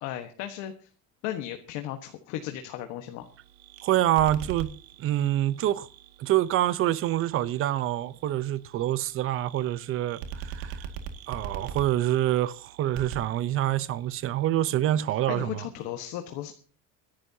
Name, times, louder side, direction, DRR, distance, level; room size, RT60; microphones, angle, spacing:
voice 1, 0.0-0.9 1.2-3.2 15.3-16.5, left 12 dB, 70° left, 1.4 m, -35 dB
sound 1, 3.2-14.5, right 7 dB, 90° right, 2.2 m, -43 dB
voice 2, 3.8-4.7 5.0-5.9 6.2-10.9 11.3-15.6, right 13 dB, 40° right, 0.8 m, -26 dB
25.0 x 11.5 x 2.8 m
cardioid pair, 155°, 32 cm